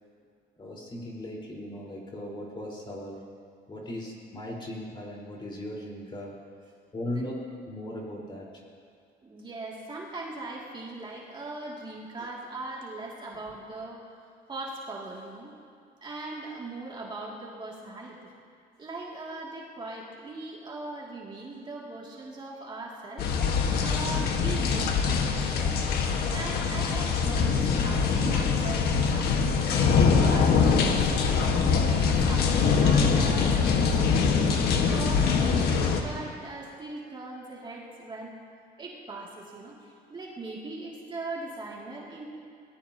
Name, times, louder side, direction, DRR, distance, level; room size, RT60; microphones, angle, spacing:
voice 1, 0.6-3.3 3.7-6.4 6.9-7.4 7.6-8.6 12.2-12.3, left 1 dB, 30° left, -3 dB, 4.6 m, -38 dB
voice 2, 9.2-14.0 14.5-15.5 16.0-18.2 18.8-25.7 26.3-34.6 34.9-38.4 38.8-42.2, right 2 dB, 30° right, -4 dB, 2.6 m, -40 dB
sound 1, 23.2-36.0, left 5 dB, 70° left, 1.6 m, -23 dB
23.0 x 19.0 x 3.0 m, 2.3 s
cardioid pair, 110°, 17 cm